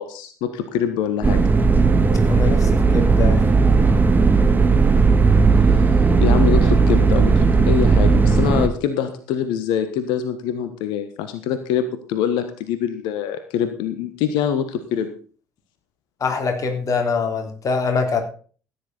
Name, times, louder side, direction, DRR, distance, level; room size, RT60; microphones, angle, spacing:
voice 1, 0.0-1.4 5.8-5.9 6.1-15.1, left 9 dB, 60° left, 10 dB, 1.3 m, -24 dB
sound 1, 1.2-8.7, right 4 dB, 20° right, 1.4 m, -16 dB
voice 2, 2.3-3.5 16.2-18.2, left 5 dB, 40° left, 4 dB, 3.4 m, -24 dB
15.0 x 10.0 x 4.0 m, 0.40 s
figure-of-eight pair, 55°, 9 cm